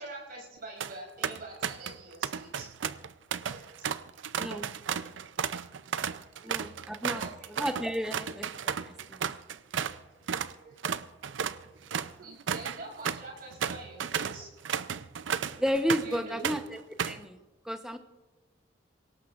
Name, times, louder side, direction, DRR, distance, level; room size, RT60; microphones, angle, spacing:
voice 1, 0.0-2.7 3.4-3.9 6.1-7.5 10.2-10.8 11.5-14.5 15.0-15.1 16.0-16.4, right 2 dB, 50° right, -1 dB, 6.3 m, -46 dB
sound 1, 0.6-0.9 1.2-2.0 2.2-10.0 10.3-10.5 10.8-16.2 16.4-17.3, right 7 dB, 80° right, 0.5 m, -33 dB
voice 2, 6.4-7.2 7.6-9.2 15.6-16.8 17.0-17.4 17.6-18.0, equal, 5° right, 6 dB, 0.8 m, -32 dB
27.5 x 18.0 x 2.5 m, 1.2 s
head